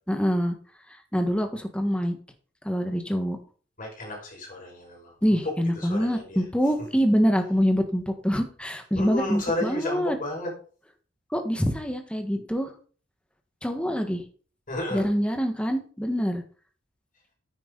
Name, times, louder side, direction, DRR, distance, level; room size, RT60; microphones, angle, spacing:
voice 1, 0.1-0.5 1.1-2.2 2.6-3.4 5.2-10.2 11.3-12.7 13.6-14.2 14.9-16.4, equal, 5° left, 5 dB, 1.6 m, -25 dB
voice 2, 3.8-5.1 5.4-6.4 8.9-10.5 14.7-15.1, left 1 dB, 45° left, -1 dB, 5.7 m, -32 dB
9.8 x 9.3 x 4.0 m, 0.40 s
head